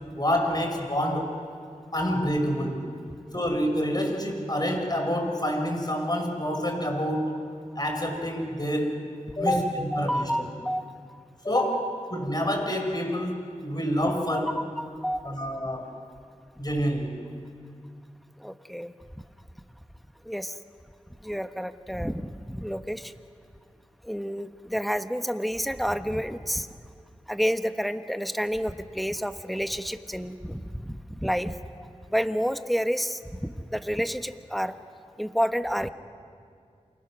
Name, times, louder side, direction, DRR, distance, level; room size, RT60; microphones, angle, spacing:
voice 1, 0.2-1.4 1.9-2.8 3.3-7.3 7.8-9.0 9.4-10.5 11.4-11.9 12.1-14.6 15.2-15.9 16.6-17.2, equal, 30° left, 3 dB, 5.7 m, -27 dB
voice 2, 9.8-11.2 14.1-14.4 14.8-15.4 18.4-18.9 20.2-20.6 21.2-23.1 24.0-26.7 27.3-31.6 32.1-34.7 35.2-35.9, equal, ahead, 9 dB, 1.3 m, -30 dB
28.5 x 25.5 x 6.2 m, 2.3 s
cardioid pair, 40°, 13 cm